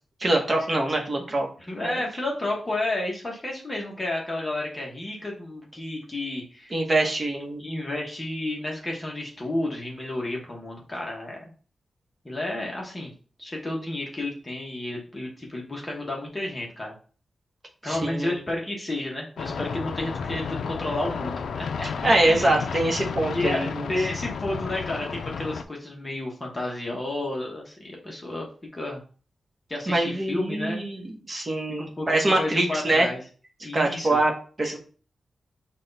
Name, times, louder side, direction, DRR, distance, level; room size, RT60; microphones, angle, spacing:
voice 1, 0.2-1.5 1.8-2.0 6.7-7.6 17.8-18.4 22.0-23.9 29.9-33.1 33.7-34.3 34.6-34.8, right 2 dB, 30° right, 1 dB, 0.9 m, -24 dB
voice 2, 1.7-6.8 7.6-11.4 12.2-13.1 13.4-16.9 17.8-21.9 22.3-22.6 23.3-28.5 28.7-29.0 29.7-30.8 31.7-33.2 33.6-34.2, left 1 dB, 20° left, -1 dB, 0.9 m, -31 dB
sound 1, 19.4-25.6, left 6 dB, 85° left, 0.3 m, -32 dB
5.9 x 2.3 x 3.9 m, 0.40 s
wide cardioid pair, 165°, 0 cm